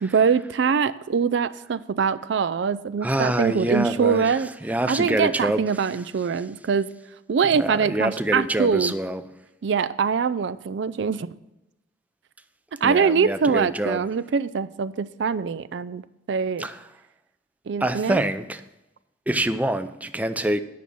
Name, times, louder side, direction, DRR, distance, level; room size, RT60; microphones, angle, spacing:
voice 1, 0.0-4.5 4.9-6.9 7.3-8.9 9.6-11.3 12.8-16.0 16.3-16.7 17.7-18.2, right 6 dB, 65° right, 0.4 m, -23 dB
voice 2, 3.0-4.4 4.6-5.6 7.6-9.2 12.8-14.0 16.6-16.8 17.8-18.6 19.3-20.6, right 1 dB, 10° right, 0.4 m, -25 dB
9.4 x 6.2 x 6.7 m
head